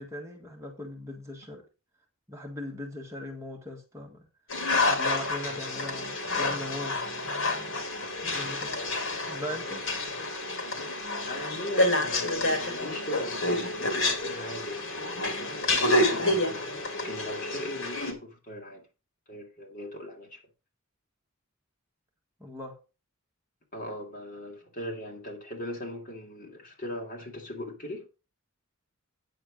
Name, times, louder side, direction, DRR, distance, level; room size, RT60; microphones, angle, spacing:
voice 1, 0.0-1.6 2.3-4.3 4.8-7.0 7.2-7.8 8.3-8.8 9.2-9.9 22.4-22.7, left 1 dB, 15° right, 1.6 m, -39 dB
sound 1, 4.5-18.1, left 2 dB, 65° left, 2.3 m, -29 dB
voice 2, 11.2-18.9 19.3-20.4 23.7-28.1, left 1 dB, 40° left, 2.7 m, -39 dB
9.1 x 6.7 x 5.2 m
head